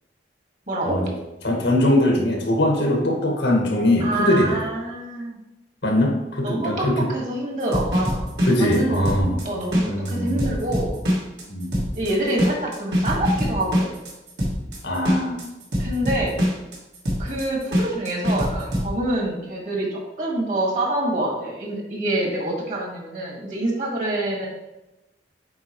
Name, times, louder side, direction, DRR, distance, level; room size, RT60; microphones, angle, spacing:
voice 1, 0.7-1.0 4.0-5.4 6.4-8.2 8.6-9.8 10.1-10.9 11.9-13.9 15.8-16.3 17.2-24.5, right 1 dB, 45° right, -1 dB, 1.7 m, -26 dB
voice 2, 1.4-4.6 5.8-7.1 8.4-9.4 9.8-10.5 11.5-11.8 14.8-15.5, left 1 dB, 90° left, 0 dB, 1.6 m, -21 dB
sound 1, 7.6-18.9, equal, 75° right, 2.0 m, -24 dB
7.9 x 4.6 x 3.0 m, 0.97 s
head